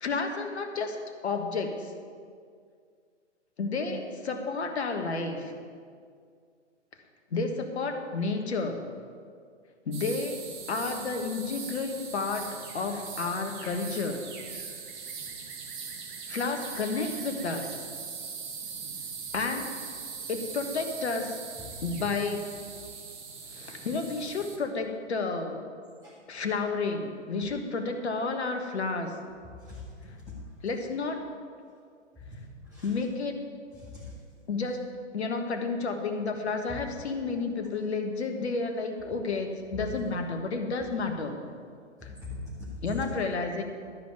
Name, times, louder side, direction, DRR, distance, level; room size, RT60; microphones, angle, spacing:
voice 1, 0.0-1.0 1.2-1.9 3.6-5.5 7.3-8.9 9.8-14.2 16.3-17.7 19.3-19.8 20.3-21.4 21.8-22.5 23.5-25.6 26.3-29.2 30.6-31.3 32.8-33.4 34.5-34.8 35.1-41.4 42.0-42.1 42.8-43.6, left 4 dB, 65° left, 5 dB, 1.4 m, -31 dB
sound 1, 9.9-24.6, right 5 dB, 40° right, 1.6 m, -40 dB
voice 2, 29.4-30.4 31.7-31.8 32.6-32.9 33.7-34.1 42.0-43.1, left 3 dB, 10° right, -10 dB, 2.3 m, -42 dB
12.5 x 5.2 x 9.0 m, 2.1 s
figure-of-eight pair, 110°, 36 cm